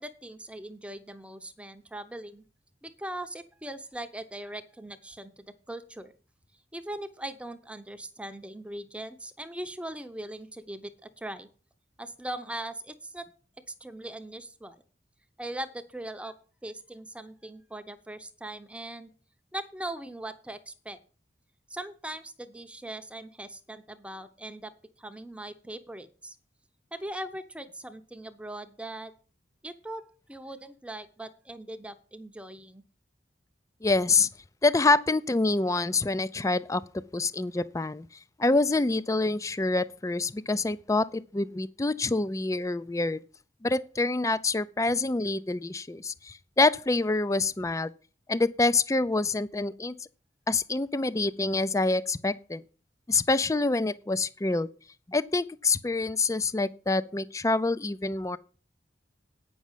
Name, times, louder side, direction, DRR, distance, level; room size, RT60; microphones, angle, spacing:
voice 1, 0.0-2.4 2.8-6.1 6.7-11.5 12.0-13.3 13.7-14.8 15.4-16.3 16.6-19.1 19.5-21.0 21.7-24.7 25.0-26.4 26.9-29.1 29.6-30.0 30.3-32.8, right 1 dB, 5° right, 0.7 m, -40 dB
voice 2, 33.8-34.3 34.6-36.8 37.1-38.1 38.4-43.2 43.6-47.9 48.3-49.9 50.5-52.6 53.1-54.7 55.1-58.4, left 3 dB, 20° left, 0.4 m, -26 dB
9.2 x 6.2 x 7.3 m
head